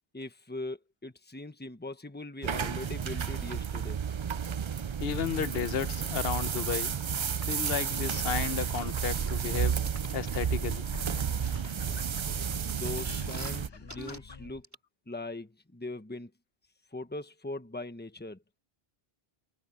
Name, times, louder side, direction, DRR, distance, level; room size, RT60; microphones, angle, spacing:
voice 1, 0.1-4.0 12.7-14.7 15.1-16.3 16.9-18.4, left 2 dB, 10° left, 1.3 m, -40 dB
sound 1, 2.4-13.7, right 7 dB, 50° right, 0.3 m, -32 dB
voice 2, 5.0-7.0 7.5-9.8 10.1-10.9, left 8 dB, 70° left, 1.0 m, -33 dB
sound 2, 7.4-8.0 8.6-11.0 11.5-13.6 13.9-14.2 14.6-14.7, equal, 15° right, 5.2 m, -45 dB
sound 3, 9.5-14.6, left 5 dB, 30° left, 0.6 m, -47 dB
omnidirectional pair, 1.0 m